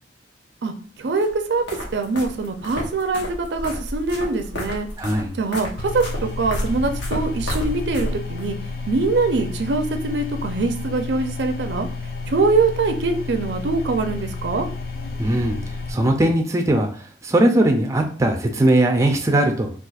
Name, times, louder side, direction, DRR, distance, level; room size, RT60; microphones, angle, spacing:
voice 1, 0.6-1.6 1.9-4.9 5.4-8.6 8.9-11.9 12.3-14.7, right 3 dB, 70° right, 6 dB, 0.5 m, -23 dB
sound 1, 1.2-8.5, equal, 85° left, 1.0 m, -31 dB
voice 2, 5.0-5.4 15.2-15.6 15.9-19.7, right 1 dB, 20° right, 3 dB, 0.4 m, -19 dB
sound 2, 5.8-15.9, left 3 dB, 55° left, 0.5 m, -31 dB
4.0 x 2.4 x 2.4 m, 0.43 s
head